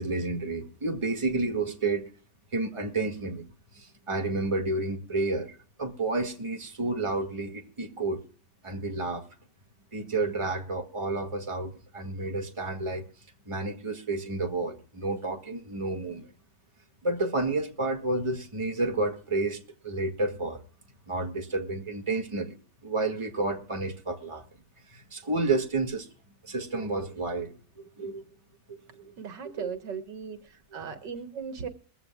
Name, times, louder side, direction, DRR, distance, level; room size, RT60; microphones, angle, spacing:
voice 1, 0.0-2.1 2.5-3.5 3.7-8.2 8.6-9.3 9.9-13.1 13.5-16.3 17.0-20.6 21.1-24.4 24.9-26.1 26.4-28.2 28.7-29.1 29.4-29.7 30.7-30.8, right 2 dB, 15° right, 1.9 m, -30 dB
voice 2, 29.2-31.7, right 6 dB, 80° right, 2.0 m, -37 dB
21.5 x 15.5 x 2.3 m
omnidirectional pair, 1.9 m